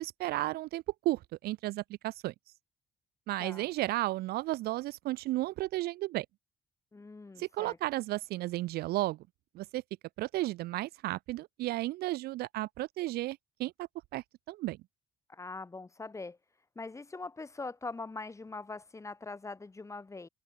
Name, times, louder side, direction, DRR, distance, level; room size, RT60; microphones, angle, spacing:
voice 1, 0.0-2.3 3.3-6.3 7.4-9.2 9.5-9.8 10.2-14.8, right 17 dB, 70° right, 0.4 m, -34 dB
voice 2, 6.9-7.8 15.3-16.4 16.8-20.3, left 3 dB, 15° left, 2.1 m, -42 dB
cardioid pair, 110°, 17 cm